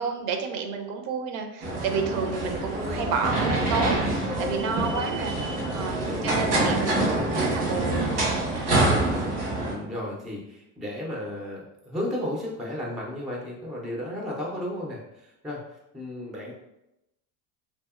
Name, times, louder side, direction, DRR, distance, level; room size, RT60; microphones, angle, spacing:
voice 1, 0.0-8.2, right 5 dB, 70° right, 5 dB, 0.6 m, -30 dB
sound 1, 1.6-9.7, right 2 dB, 90° right, 1.3 m, -26 dB
voice 2, 6.0-6.5 9.5-16.5, left 1 dB, ahead, -2 dB, 0.3 m, -34 dB
2.7 x 2.6 x 2.3 m, 0.88 s
supercardioid pair, 105°, 46 cm